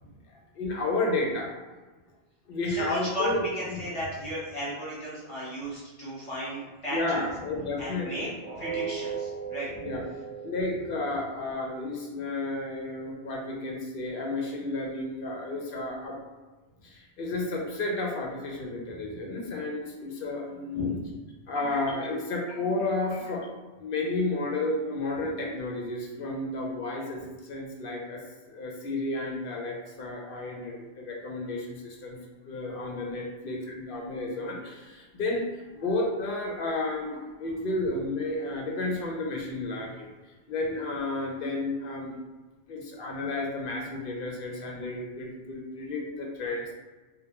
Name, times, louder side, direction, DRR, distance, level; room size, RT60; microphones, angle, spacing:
voice 1, 0.6-1.5 2.5-3.4 3.7-3.8 6.9-8.3 9.8-10.0 10.4-16.2 16.8-21.0 21.5-23.5 23.8-27.2 27.5-32.2 32.4-35.5 35.7-40.1 40.5-42.2 42.7-46.7, left 2 dB, 65° left, -1 dB, 0.7 m, -32 dB
voice 2, 2.7-7.3 7.5-9.8 18.9-19.0 20.7-21.1, equal, 35° left, -8 dB, 0.8 m, -35 dB
sound 1, 8.4-14.4 14.8-15.0 15.5-15.6, right 6 dB, 50° right, 0.8 m, -40 dB
2.1 x 2.1 x 2.8 m, 1.2 s
omnidirectional pair, 1.1 m